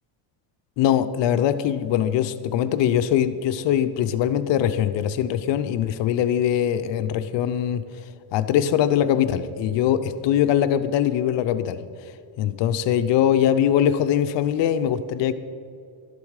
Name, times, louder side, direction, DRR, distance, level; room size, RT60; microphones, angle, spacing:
voice 1, 0.8-7.8 8.3-11.8 12.4-15.3, left 10 dB, 60° left, 11 dB, 0.7 m, -22 dB
12.5 x 11.0 x 4.8 m, 2.4 s
cardioid pair, 135°, 49 cm